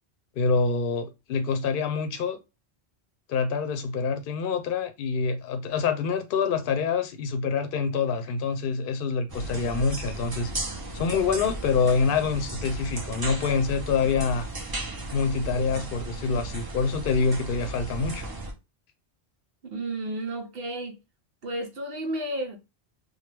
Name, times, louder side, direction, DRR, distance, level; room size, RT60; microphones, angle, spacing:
voice 1, 0.4-2.4 3.3-10.5 10.9-14.5 15.1-18.2, left 5 dB, 60° left, 0.7 m, -26 dB
sound 1, 9.3-18.5, right 2 dB, 25° right, 0.5 m, -35 dB
voice 2, 19.6-21.0 21.4-22.6, right 1 dB, 65° right, 0.9 m, -32 dB
3.0 x 2.2 x 3.2 m
omnidirectional pair, 1.1 m